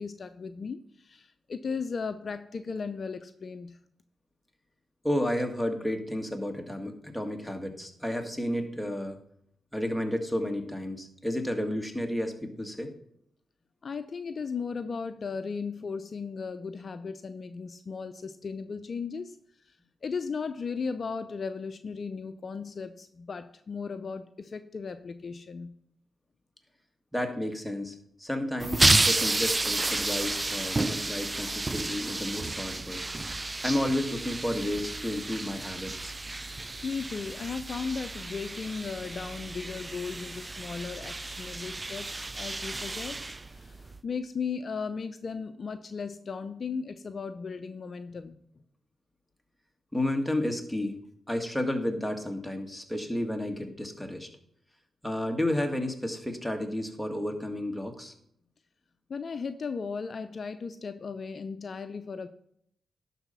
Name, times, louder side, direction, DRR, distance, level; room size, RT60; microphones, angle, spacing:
voice 1, 0.0-3.8 13.8-19.4 19.6-19.8 20.0-25.7 36.8-48.4 59.1-62.3, left 5 dB, 55° left, 10 dB, 0.5 m, -36 dB
voice 2, 5.0-9.2 9.7-12.9 27.1-33.0 33.6-36.1 49.9-51.0 51.3-54.3 55.0-58.1, left 1 dB, ahead, 4 dB, 1.8 m, -31 dB
sound 1, 28.6-44.0, right 2 dB, 30° right, 0.4 m, -31 dB
11.0 x 4.1 x 5.7 m, 0.70 s
supercardioid pair, 45°, 0 cm